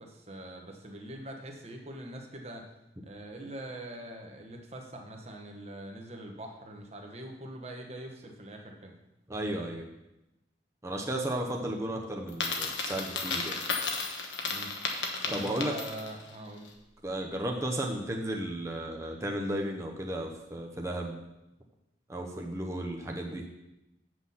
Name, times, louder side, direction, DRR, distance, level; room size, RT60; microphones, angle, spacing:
voice 1, 0.0-2.7 3.0-8.9 14.4-14.7 15.2-16.7, right 1 dB, 35° right, 2 dB, 1.2 m, -43 dB
voice 2, 9.3-9.9 10.8-13.6 15.3-15.7 17.0-21.2 22.1-23.4, right 1 dB, 15° right, 1 dB, 0.8 m, -34 dB
Coin (dropping), 12.3-16.2, left 4 dB, 75° left, 1.2 m, -33 dB
8.0 x 6.2 x 5.6 m, 0.93 s
head